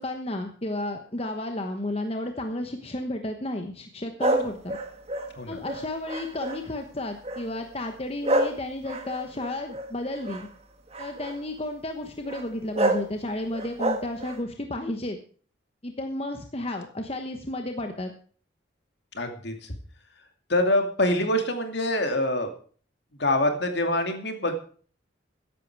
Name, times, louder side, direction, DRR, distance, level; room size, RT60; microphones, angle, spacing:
voice 1, 0.0-4.8 5.5-10.5 11.0-15.2 15.8-18.1, left 1 dB, 30° left, 5 dB, 1.1 m, -32 dB
sound 1, 4.2-6.8 7.2-7.6 8.2-10.5 10.9-11.4 12.3-12.4 12.7-13.1 13.5-14.4, right 1 dB, 30° right, 1.6 m, -28 dB
voice 2, 19.1-19.7 20.5-22.5 23.2-24.5, left 1 dB, 60° left, 5 dB, 2.5 m, -25 dB
14.5 x 11.0 x 4.7 m, 0.44 s
head